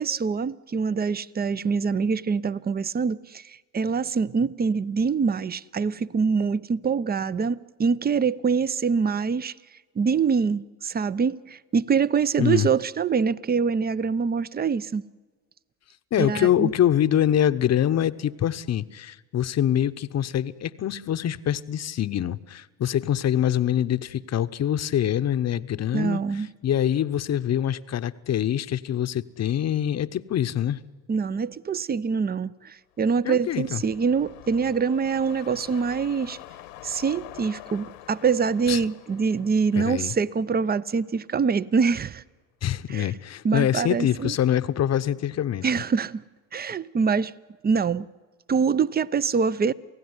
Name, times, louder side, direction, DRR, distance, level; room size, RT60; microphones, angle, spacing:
voice 1, 0.0-9.5 10.0-15.0 16.2-16.7 25.9-26.5 31.1-36.4 36.8-42.2 42.9-43.1 43.4-44.3 45.6-46.2 46.5-47.3 47.6-48.1 48.5-49.7, right 5 dB, 25° right, 0.7 m, -24 dB
voice 2, 16.1-26.2 26.6-30.8 33.2-33.8 38.7-38.8 39.8-40.1 42.6-45.6, left 10 dB, 40° left, 0.9 m, -24 dB
sound 1, 33.0-41.4 41.8-41.9, left 15 dB, 80° left, 1.4 m, -46 dB
28.0 x 16.0 x 9.7 m
hypercardioid pair, 70°, 39 cm